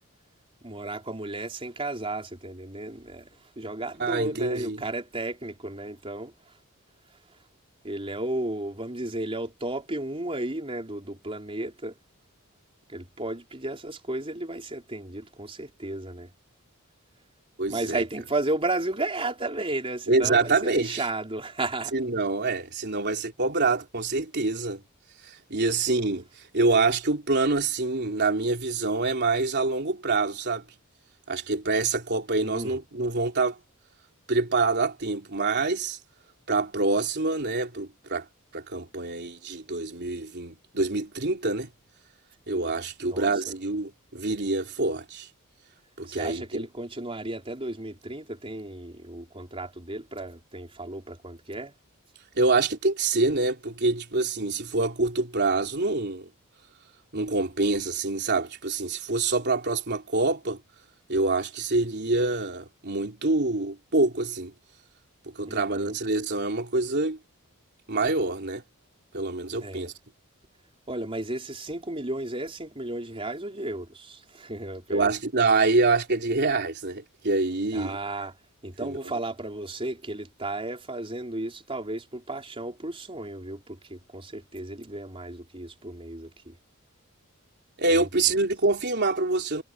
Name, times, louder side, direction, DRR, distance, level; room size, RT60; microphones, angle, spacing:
voice 1, 0.6-6.6 7.8-12.0 12.9-16.3 17.7-21.9 32.4-32.8 43.0-43.5 46.0-51.7 65.5-65.9 69.6-69.9 70.9-75.1 77.7-78.3 78.6-86.6 87.9-88.1, right 2 dB, 25° right, 4.5 m, -34 dB
voice 2, 4.0-4.8 17.6-18.0 20.1-21.0 21.9-24.8 25.2-26.3 26.5-30.6 31.3-33.6 34.3-36.0 36.5-38.2 38.5-41.7 42.5-45.3 46.0-46.7 52.3-56.3 57.1-60.6 61.1-64.5 65.3-67.2 67.9-68.6 69.1-69.9 74.9-78.0 78.8-79.0 87.8-89.6, right 3 dB, 50° right, 3.5 m, -26 dB
head